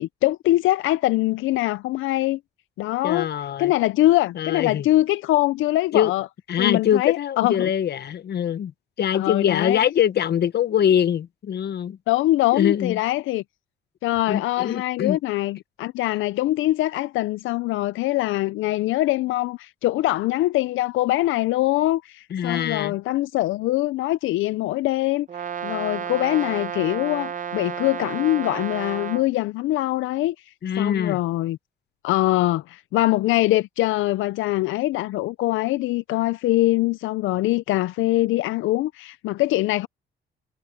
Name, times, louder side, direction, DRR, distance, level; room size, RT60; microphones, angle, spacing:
voice 1, 0.0-2.4 2.8-3.3 3.6-6.2 6.6-7.7 9.1-9.8 12.1-13.4 14.0-25.3 25.6-30.3 30.8-31.6 32.0-39.9, left 16 dB, 85° left, 0.5 m, -23 dB
voice 2, 3.0-3.7 4.4-4.9 5.9-6.1 6.5-8.7 9.0-12.0 12.5-13.0 14.3-15.2 22.3-23.0 30.6-31.2, left 9 dB, 55° left, 0.9 m, -23 dB
Brass instrument, 25.3-29.3, right 8 dB, 40° right, 0.9 m, -31 dB
cardioid pair, 90°, 20 cm